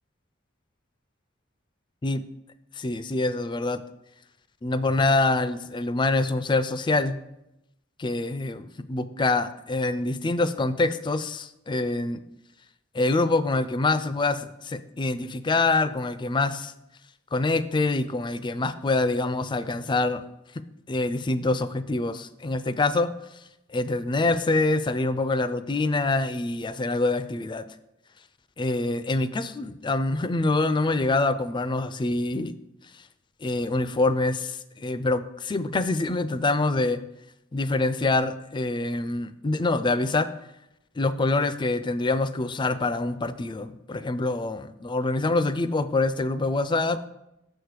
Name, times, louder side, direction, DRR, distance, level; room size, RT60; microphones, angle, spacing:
voice 1, 2.8-3.8 4.6-7.2 8.0-12.2 12.9-16.7 17.3-20.2 20.9-23.1 23.7-27.6 28.6-32.5 33.4-37.0 37.5-40.3 41.0-47.0, left 2 dB, 25° left, 13 dB, 0.4 m, -25 dB
6.6 x 6.4 x 4.7 m, 0.85 s
head